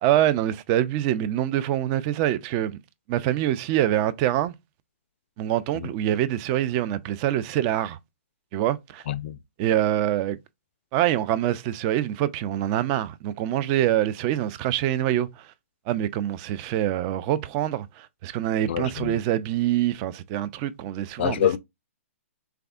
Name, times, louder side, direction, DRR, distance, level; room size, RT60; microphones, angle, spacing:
voice 1, 0.0-2.8 3.1-4.5 5.4-8.0 8.5-9.0 9.6-10.4 10.9-15.5 15.9-21.5, right 12 dB, 30° right, 0.3 m, -25 dB
voice 2, 9.1-9.4 18.7-19.2 21.2-21.6, left 11 dB, 50° left, 0.4 m, -26 dB
3.4 x 3.4 x 2.3 m
figure-of-eight pair, 125°, 8 cm